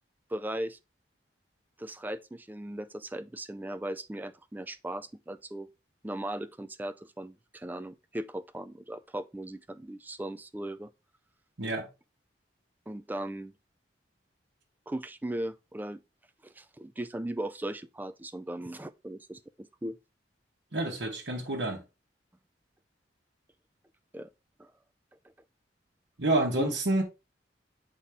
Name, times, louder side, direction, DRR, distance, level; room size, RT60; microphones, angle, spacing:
voice 1, 0.3-0.8 1.8-5.7 6.0-10.9 12.9-13.5 14.9-16.0 16.4-20.0 24.1-24.3 24.6-24.7 26.6-26.8, right 1 dB, 10° right, 0.3 m, -38 dB
voice 2, 20.7-21.8 26.2-27.0, right 2 dB, 70° right, 1.3 m, -28 dB
7.3 x 4.1 x 3.5 m
head